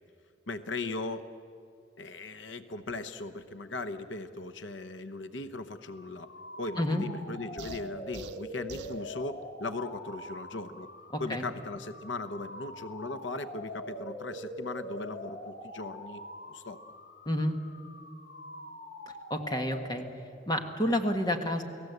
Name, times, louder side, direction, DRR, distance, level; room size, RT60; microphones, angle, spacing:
voice 1, 0.5-1.3 2.0-6.3 6.6-10.9 11.2-16.8, left 3 dB, 90° left, 11 dB, 1.0 m, -38 dB
sound 1, 5.8-20.4, left 1 dB, 50° left, 2.4 m, -44 dB
sound 2, 7.6-9.0, right 4 dB, 75° right, 0.8 m, -46 dB
voice 2, 11.1-11.4 17.2-17.6 19.3-20.0 20.5-21.6, left 1 dB, 20° left, 5 dB, 1.5 m, -29 dB
29.5 x 18.0 x 8.1 m, 2.6 s
head